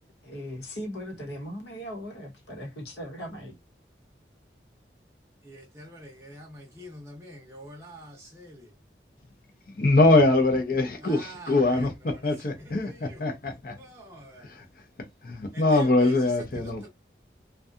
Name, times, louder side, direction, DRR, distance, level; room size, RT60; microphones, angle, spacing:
voice 1, 0.2-3.6, equal, 75° left, 1.0 m, -38 dB
voice 2, 5.4-8.7 11.0-13.4 13.8-14.5 15.5-16.9, right 1 dB, 15° right, 0.6 m, -46 dB
voice 3, 9.7-11.9 12.2-13.7 14.4-14.6 15.2-16.9, left 2 dB, 55° left, 0.6 m, -23 dB
2.7 x 2.3 x 2.3 m
head